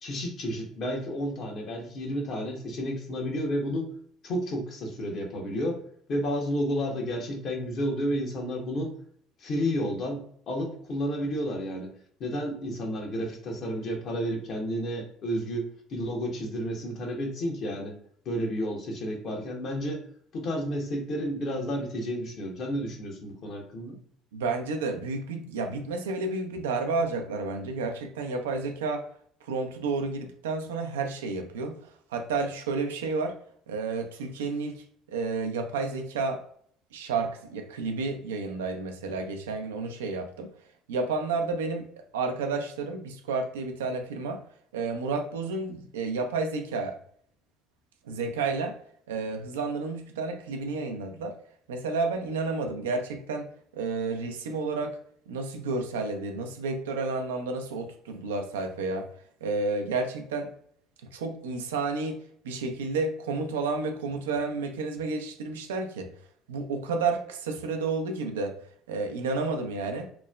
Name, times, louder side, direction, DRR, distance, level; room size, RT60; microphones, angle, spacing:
voice 1, 0.0-3.9 4.2-5.8 6.1-8.9 9.4-11.9 12.2-18.0 18.2-20.0 20.3-24.0, equal, 55° left, 0.8 m, -31 dB
voice 2, 24.3-29.0 29.5-31.8 32.1-33.4 33.7-34.8 35.1-36.4 36.9-40.5 40.9-41.9 42.1-44.4 44.7-47.0 48.1-48.7 49.1-51.4 51.7-53.5 53.7-55.0 55.3-59.1 59.4-60.5 61.1-62.2 62.4-66.1 66.5-68.5 68.9-70.1, right 3 dB, 85° right, 0.3 m, -31 dB
2.9 x 2.0 x 2.3 m
hypercardioid pair, 65°, 0 cm